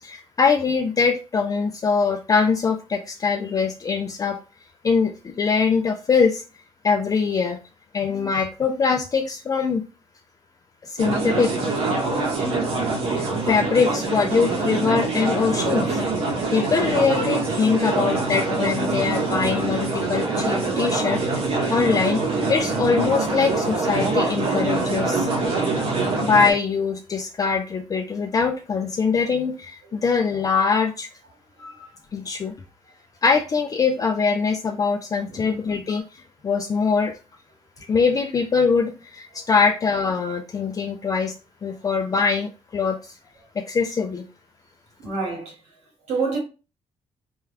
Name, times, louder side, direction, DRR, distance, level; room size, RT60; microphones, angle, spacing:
voice 1, 0.0-4.4 4.8-6.4 6.8-7.6 7.9-9.8 10.8-11.5 13.1-16.0 16.5-21.4 21.7-22.2 22.5-25.3 26.2-31.1 31.6-32.5 33.2-37.1 37.9-41.3 41.6-43.1 43.6-44.2, left 5 dB, 30° left, 0.4 m, -22 dB
sound 1, 11.0-26.5, right 3 dB, 65° right, 1.3 m, -24 dB
voice 2, 35.3-35.6 39.3-39.4 41.7-41.8 45.0-45.6 46.1-46.4, right 4 dB, 80° right, 2.2 m, -28 dB
4.4 x 2.4 x 3.3 m
cardioid pair, 125°, 11 cm